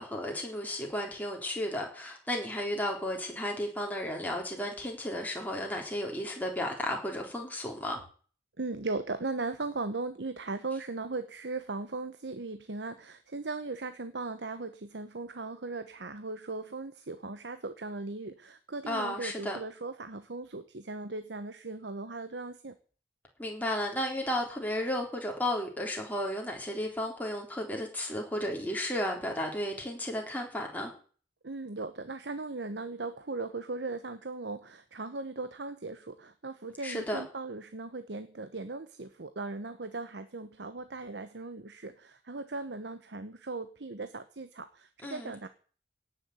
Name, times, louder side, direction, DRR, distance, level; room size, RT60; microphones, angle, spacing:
voice 1, 0.0-8.0 18.9-19.6 23.4-30.9 36.8-37.2 45.0-45.5, left 1 dB, 10° left, 1 dB, 3.9 m, -33 dB
voice 2, 8.6-22.7 31.4-45.5, right 3 dB, 85° right, 10 dB, 1.1 m, -38 dB
17.5 x 7.0 x 8.2 m, 0.43 s
head